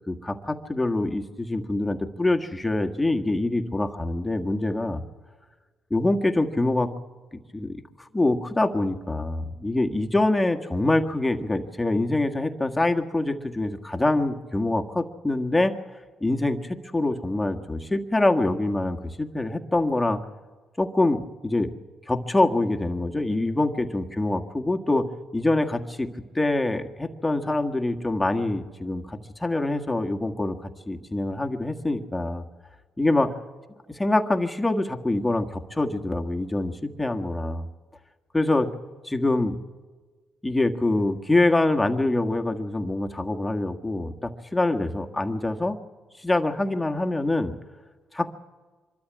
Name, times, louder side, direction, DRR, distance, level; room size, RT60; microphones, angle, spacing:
voice 1, 0.1-5.0 5.9-6.9 7.5-15.8 16.2-20.2 20.8-21.7 22.1-25.1 25.3-26.1 26.3-32.4 33.0-33.3 33.9-37.7 38.3-38.7 39.0-39.5 40.4-45.8 46.2-47.5 48.1-48.3, left 2 dB, 10° left, 5 dB, 1.7 m, -25 dB
24.5 x 13.0 x 8.8 m, 1.4 s
cardioid pair, 90°, 0 cm